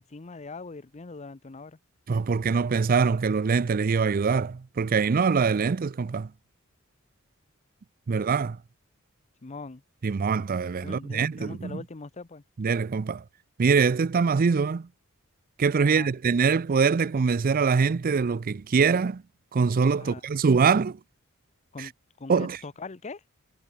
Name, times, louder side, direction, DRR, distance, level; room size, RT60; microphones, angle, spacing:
voice 1, 0.0-1.8 9.4-9.8 10.8-12.4 15.8-16.1 20.0-20.2 21.7-21.9 22.2-23.2, left 3 dB, 30° left, 0.7 m, -41 dB
voice 2, 2.1-6.3 8.1-8.6 10.0-11.8 12.6-13.2 13.6-14.9 15.6-19.2 19.5-21.0 21.8-21.9 22.3-22.6, right 5 dB, 40° right, 0.4 m, -23 dB
head